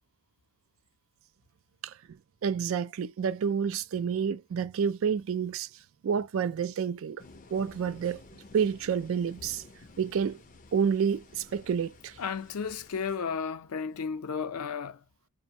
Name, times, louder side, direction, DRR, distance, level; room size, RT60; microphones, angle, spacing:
voice 1, 1.8-5.7 6.0-7.2 7.5-8.2 8.5-9.6 10.0-10.4 10.7-12.2, right 7 dB, 65° right, 0.3 m, -29 dB
sound 1, 7.2-13.2, left 3 dB, 35° left, 0.4 m, -52 dB
voice 2, 12.2-15.0, left 6 dB, 90° left, 0.5 m, -33 dB
2.5 x 2.1 x 2.6 m
head